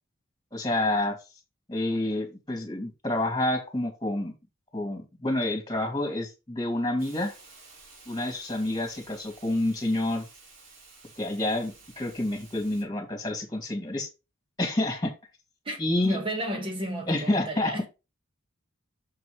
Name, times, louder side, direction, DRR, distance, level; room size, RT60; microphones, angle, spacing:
voice 1, 0.5-1.2 1.7-4.3 4.7-7.3 8.1-10.3 11.2-14.1 14.6-15.1 15.8-16.2 17.1-17.7, left 1 dB, 20° left, 2.6 m, -28 dB
Hiss, 7.0-12.8, right 3 dB, 60° right, 4.1 m, -52 dB
voice 2, 15.7-17.9, right 1 dB, 25° right, 2.1 m, -33 dB
7.1 x 5.9 x 3.4 m
head